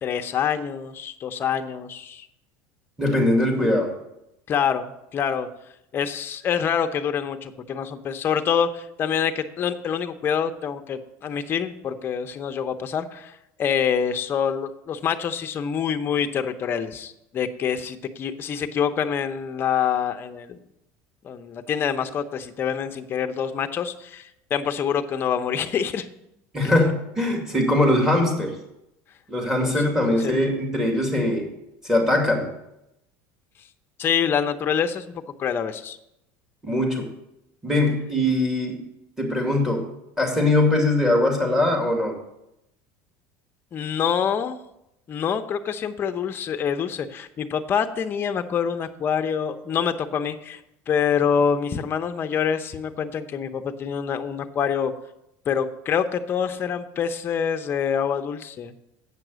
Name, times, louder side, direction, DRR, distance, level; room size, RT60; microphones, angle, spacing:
voice 1, 0.0-2.3 4.5-5.5 5.9-20.6 21.2-26.1 30.2-30.3 34.0-35.1 35.4-36.0 43.7-44.6 45.1-50.6 50.9-54.9 55.5-58.7, left 7 dB, 30° left, 7 dB, 0.8 m, -26 dB
voice 2, 3.0-3.9 26.5-28.6 29.3-31.5 31.8-32.5 36.6-37.1 37.6-38.8 39.2-39.9 40.2-42.2, left 1 dB, 5° right, 2 dB, 2.4 m, -21 dB
8.3 x 6.0 x 8.0 m, 0.85 s
supercardioid pair, 130°, 7 cm